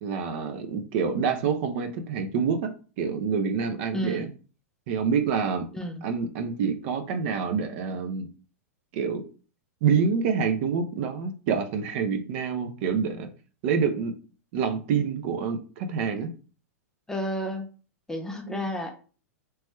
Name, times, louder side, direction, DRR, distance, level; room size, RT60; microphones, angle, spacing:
voice 1, 0.0-4.3 4.9-5.7 6.0-8.3 8.9-9.2 9.8-13.3 13.6-14.1 14.5-16.3 18.5-18.7, right 6 dB, 50° right, 7 dB, 0.5 m, -27 dB
voice 2, 3.9-4.3 5.7-6.0 17.1-17.7 18.1-19.0, equal, 5° left, 4 dB, 0.4 m, -31 dB
3.1 x 3.0 x 2.2 m, 0.37 s
hypercardioid pair, 125°, 8 cm